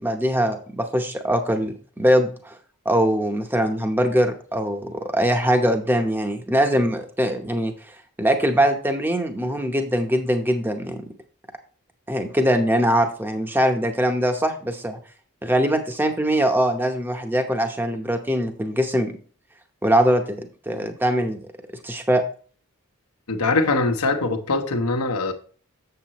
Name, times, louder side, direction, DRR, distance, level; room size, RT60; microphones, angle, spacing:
voice 1, 0.0-2.5 2.8-7.7 8.2-11.0 12.1-15.0 15.4-19.1 19.8-21.5 21.8-22.2, equal, 10° right, 0.8 m, -22 dB
voice 2, 23.3-25.3, left 3 dB, 85° left, 1.2 m, -22 dB
7.6 x 7.6 x 3.0 m
head